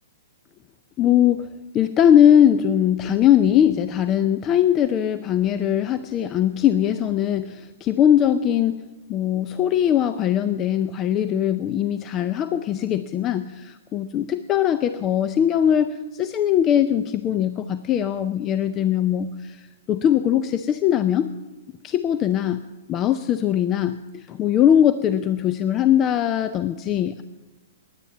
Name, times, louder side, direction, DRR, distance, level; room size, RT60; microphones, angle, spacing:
voice 1, 1.0-1.5 1.7-8.8 9.1-21.3 21.8-22.6 22.9-27.2, left 10 dB, 30° left, 11 dB, 0.5 m, -20 dB
10.5 x 9.8 x 8.5 m, 1.1 s
hypercardioid pair, 115°, 0 cm